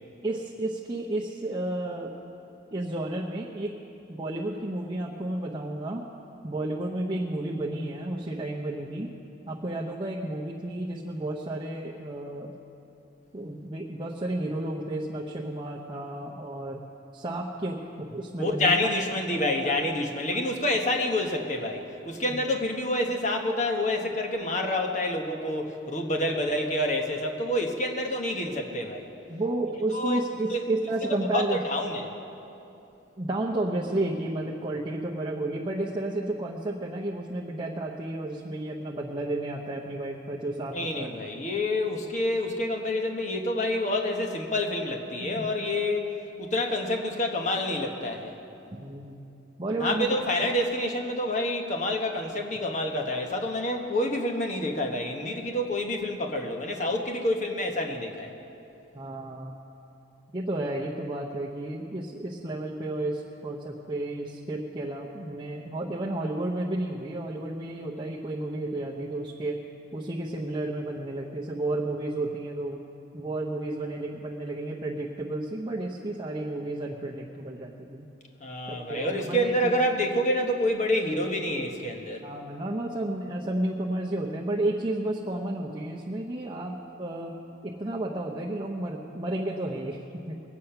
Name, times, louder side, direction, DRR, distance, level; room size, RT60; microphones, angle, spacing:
voice 1, 0.2-2.1 2.7-3.8 4.1-6.1 6.4-9.1 9.5-12.5 13.3-16.8 17.1-18.9 19.3-20.4 22.3-22.6 26.2-26.3 29.3-31.6 33.2-41.1 45.4-45.5 48.7-49.2 49.6-50.4 58.9-59.5 60.3-69.6 69.9-72.8 73.1-78.1 78.7-79.8 82.2-87.4 87.6-90.4, right 1 dB, 25° right, -3 dB, 0.8 m, -32 dB
voice 2, 18.4-29.1 29.9-30.2 30.5-30.6 31.1-32.1 40.7-46.1 46.4-48.4 49.8-58.3 78.4-82.3, left 1 dB, 35° left, 2 dB, 1.2 m, -28 dB
21.5 x 8.4 x 5.8 m, 2.8 s
head